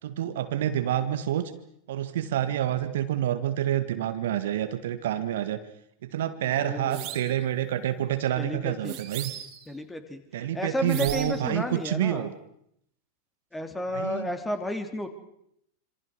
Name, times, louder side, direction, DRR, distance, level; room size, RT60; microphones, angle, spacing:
voice 1, 0.0-1.5 1.9-5.6 6.0-9.3 10.3-12.3 13.9-14.3, right 11 dB, 55° right, 10 dB, 1.8 m, -28 dB
voice 2, 6.4-7.1 8.4-9.0 9.7-12.3 13.5-15.1, left 1 dB, 10° left, 7 dB, 3.3 m, -32 dB
sound 1, 6.9-7.4 8.9-9.7 10.9-11.5, right 12 dB, 40° right, 3.4 m, -37 dB
27.0 x 27.0 x 6.3 m, 0.73 s
figure-of-eight pair, 90°, 0 cm